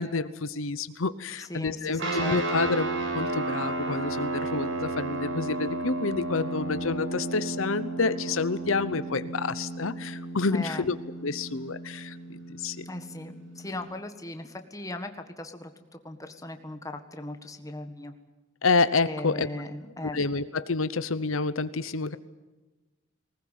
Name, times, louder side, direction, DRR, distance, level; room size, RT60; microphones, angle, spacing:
voice 1, 0.0-2.9 3.1-11.0 11.2-12.8 18.6-19.5 20.0-22.2, left 4 dB, 75° left, 14 dB, 0.9 m, -28 dB
voice 2, 1.4-2.6 10.5-10.9 12.9-18.1 19.1-20.2, left 1 dB, 15° left, 7 dB, 1.6 m, -38 dB
sound 1, 2.0-13.8, right 2 dB, 65° right, 5.2 m, -33 dB
20.0 x 19.5 x 9.3 m, 1.2 s
head